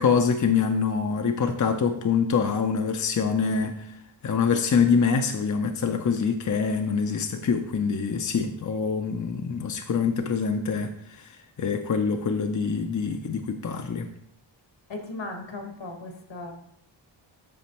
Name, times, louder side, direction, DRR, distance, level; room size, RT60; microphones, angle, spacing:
voice 1, 0.0-4.0 4.2-14.1, left 5 dB, 40° left, 5 dB, 0.5 m, -25 dB
voice 2, 14.9-16.5, left 2 dB, 70° left, 3 dB, 1.5 m, -37 dB
8.4 x 6.0 x 3.0 m, 0.69 s
wide cardioid pair, 115°, 45 cm